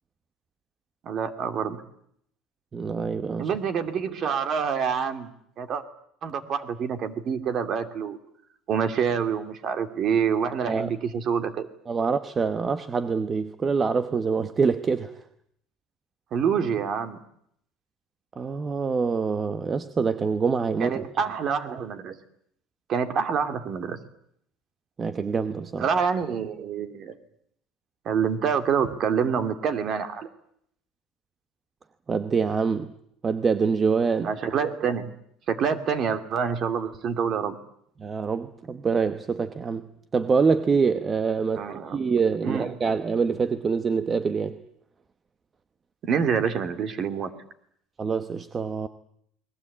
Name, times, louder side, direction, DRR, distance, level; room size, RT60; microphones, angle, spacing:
voice 1, 1.0-1.8 3.4-5.8 6.2-8.2 8.7-11.7 16.3-17.2 20.8-22.2 22.9-24.0 25.8-27.2 28.0-30.3 34.2-35.1 35.5-37.6 41.5-42.0 42.4-42.8 46.0-47.3, right 6 dB, 40° right, 9 dB, 2.5 m, -27 dB
voice 2, 2.7-3.5 10.7-10.9 11.9-15.1 18.4-21.0 25.0-25.9 32.1-32.9 33.2-34.3 38.0-39.9 40.1-41.7 41.9-44.6 48.0-48.9, right 5 dB, 20° right, 11 dB, 1.0 m, -25 dB
29.5 x 21.5 x 8.6 m, 0.71 s
cardioid pair, 160°, 0 cm